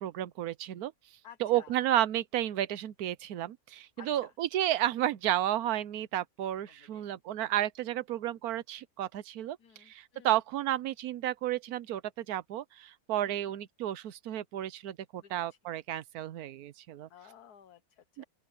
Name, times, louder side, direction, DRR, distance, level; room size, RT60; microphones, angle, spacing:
voice 1, 0.0-0.9 1.4-9.6 9.9-17.1 18.2-18.3, right 12 dB, 75° right, 1.2 m, -32 dB
voice 2, 1.2-1.7 4.0-4.3 6.7-7.1 9.6-10.3 13.2-13.5 15.2-15.6 17.1-18.2, left 9 dB, 85° left, 1.6 m, -55 dB
open air
omnidirectional pair, 1.6 m